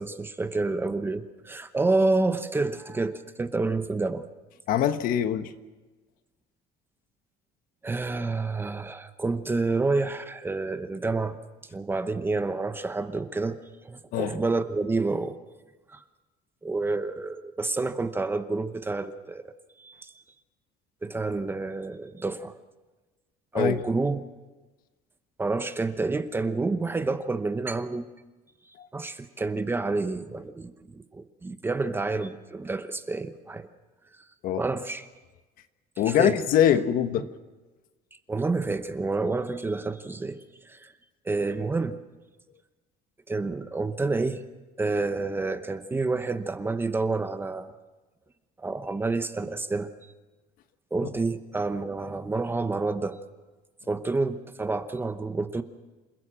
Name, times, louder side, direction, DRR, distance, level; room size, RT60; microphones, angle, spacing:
voice 1, 0.0-4.2 7.8-11.4 11.7-13.6 13.8-15.3 15.9-16.0 16.6-19.5 19.8-20.1 21.0-22.5 23.5-24.3 25.4-28.1 28.9-33.7 34.6-35.1 36.0-36.4 37.2-37.3 38.3-40.9 41.2-42.0 43.3-44.4 44.8-47.7 48.6-49.9 50.9-53.2 53.9-55.6, right 3 dB, 15° right, 0.9 m, -29 dB
voice 2, 4.7-5.5 14.1-14.4 23.5-23.8 28.8-28.9 34.4-34.6 36.0-37.3, left 10 dB, 60° left, 1.2 m, -23 dB
28.0 x 16.0 x 7.6 m
cardioid pair, 160°, 17 cm